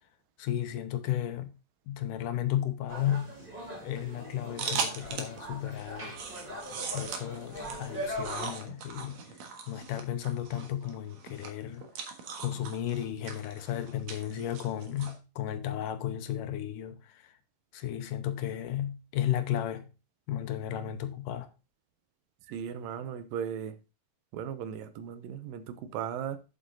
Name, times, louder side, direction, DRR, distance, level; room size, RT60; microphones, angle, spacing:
voice 1, 0.4-1.5 1.9-3.3 3.8-6.2 6.9-9.2 9.7-11.9 12.4-17.4 17.7-19.9 20.3-21.5, left 11 dB, 75° left, 2.3 m, -34 dB
sound 1, 2.9-8.5, equal, 15° right, 3.2 m, -41 dB
sound 2, 4.6-5.4 5.8-15.1, right 6 dB, 60° right, 2.5 m, -39 dB
voice 2, 22.5-23.8 24.3-26.4, right 8 dB, 80° right, 2.6 m, -37 dB
8.6 x 7.8 x 3.8 m
omnidirectional pair, 4.0 m